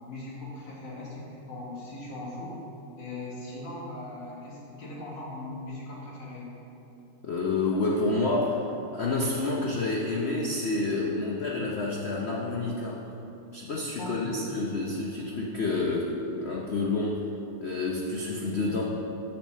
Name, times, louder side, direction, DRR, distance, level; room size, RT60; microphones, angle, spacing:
voice 1, 0.1-2.6 3.0-6.5 14.0-14.5, left 2 dB, 65° left, -5 dB, 2.3 m, -39 dB
voice 2, 7.2-13.1 13.5-17.2 17.6-18.8, left 2 dB, 85° left, -3 dB, 0.5 m, -29 dB
6.9 x 5.8 x 6.4 m, 2.8 s
omnidirectional pair, 2.2 m